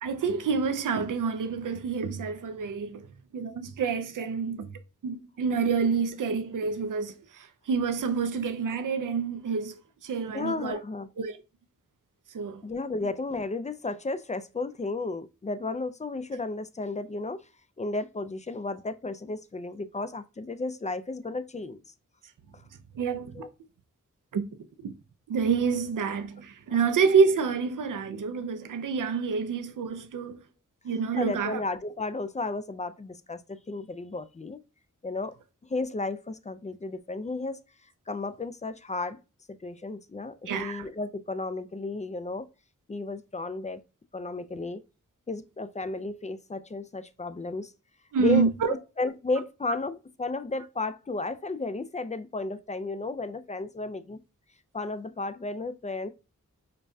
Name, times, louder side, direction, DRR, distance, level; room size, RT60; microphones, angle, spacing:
voice 1, 0.0-3.1 3.3-4.7 5.0-10.8 11.2-11.4 12.3-12.6 22.9-23.3 24.3-24.4 24.8-24.9 25.3-30.4 30.8-31.6 40.5-40.9 48.1-48.5, right 5 dB, 85° right, 0.5 m, -28 dB
voice 2, 10.3-11.1 12.6-17.5 17.8-21.8 22.5-22.6 23.3-23.5 31.2-34.6 35.0-35.4 35.7-37.6 38.1-39.2 39.6-42.5 42.9-43.8 44.1-44.8 45.3-47.7 48.2-54.2 54.7-56.1, left 3 dB, 25° left, 0.4 m, -33 dB
5.1 x 2.2 x 2.6 m
cardioid pair, 50°, 31 cm